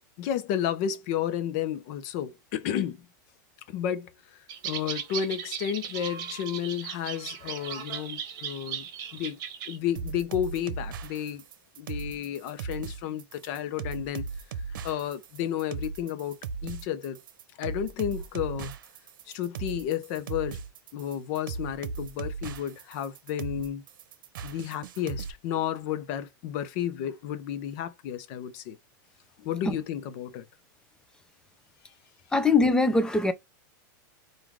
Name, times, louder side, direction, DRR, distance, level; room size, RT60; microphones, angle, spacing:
voice 1, 0.2-3.1 3.7-9.4 9.7-11.4 11.8-14.3 14.8-17.2 17.6-18.7 19.3-20.6 20.9-23.8 24.4-28.8 29.4-30.5, left 10 dB, 50° left, 0.8 m, -32 dB
sound 1, 4.5-9.8, right 8 dB, 40° right, 1.8 m, -37 dB
sound 2, 10.0-25.3, right 5 dB, 80° right, 0.8 m, -37 dB
voice 2, 32.3-33.3, left 3 dB, 5° left, 0.5 m, -22 dB
3.6 x 2.5 x 4.6 m
supercardioid pair, 150°, 11 cm